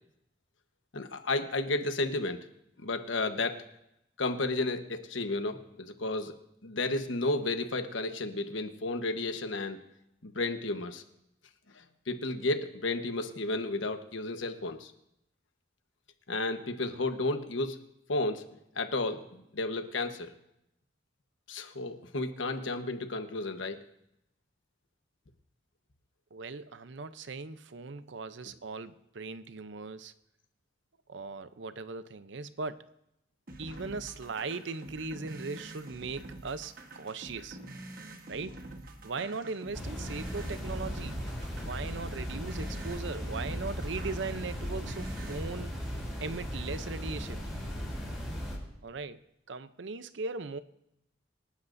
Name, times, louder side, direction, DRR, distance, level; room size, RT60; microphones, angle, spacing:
voice 1, 0.9-2.5 2.8-3.6 4.2-6.3 6.6-9.8 10.2-11.0 11.7-14.9 16.3-17.8 18.1-20.3 21.5-23.8, left 2 dB, 85° left, 1.2 m, -32 dB
voice 2, 26.3-30.1 31.1-32.9 33.6-37.6 38.3-38.6 39.0-41.2 41.6-47.4 48.8-49.2 49.5-50.6, right 4 dB, 75° right, 0.7 m, -39 dB
sound 1, 33.5-45.5, right 1 dB, 45° right, 1.3 m, -47 dB
sound 2, 39.7-48.6, equal, ahead, 5.8 m, -37 dB
27.0 x 11.5 x 2.6 m
head